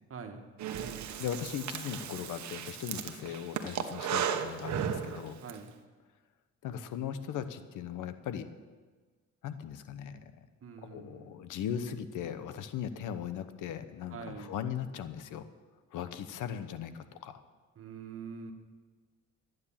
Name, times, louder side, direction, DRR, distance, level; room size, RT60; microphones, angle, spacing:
voice 1, 0.1-0.5 5.4-5.7 10.6-11.5 14.1-14.5 17.8-18.5, right 5 dB, 45° right, 5 dB, 1.8 m, -44 dB
Breathing, 0.6-5.6, right 8 dB, 65° right, 1.1 m, -35 dB
voice 2, 1.2-5.4 6.6-8.4 9.4-10.3 10.8-15.4 15.9-17.4, left 9 dB, 85° left, 11 dB, 1.0 m, -38 dB
13.5 x 9.4 x 7.4 m, 1.4 s
cardioid pair, 90°, 30 cm